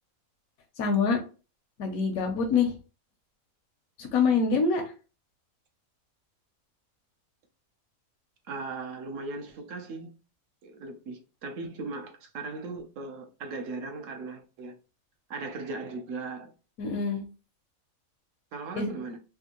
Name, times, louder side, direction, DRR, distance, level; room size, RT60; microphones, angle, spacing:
voice 1, 0.8-1.2 1.8-2.7 4.0-4.9 16.8-17.2 18.8-18.9, left 5 dB, 85° left, 1.1 m, -25 dB
voice 2, 8.5-10.1 10.6-14.7 15.3-16.5 18.5-19.2, right 3 dB, 70° right, 1.0 m, -38 dB
3.5 x 2.4 x 2.9 m
omnidirectional pair, 1.5 m